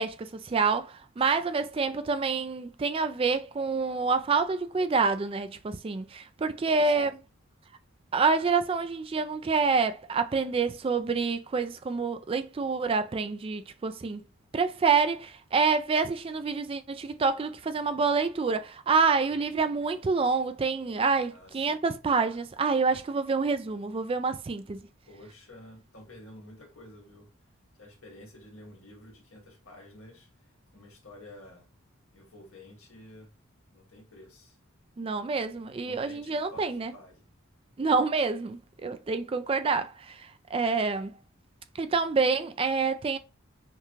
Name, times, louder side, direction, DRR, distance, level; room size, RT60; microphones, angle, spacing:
voice 1, 0.0-7.1 8.1-14.2 14.5-24.8 35.0-36.9 37.8-41.1 41.8-43.2, right 4 dB, 25° right, 0.3 m, -27 dB
voice 2, 6.4-7.1 19.3-19.6 21.3-21.9 25.1-27.3 27.8-30.3 30.7-31.7 32.1-33.3 33.7-34.6 35.8-36.6 36.9-37.2 38.8-39.0, left 1 dB, 85° left, 1.8 m, -50 dB
5.8 x 2.2 x 3.1 m
head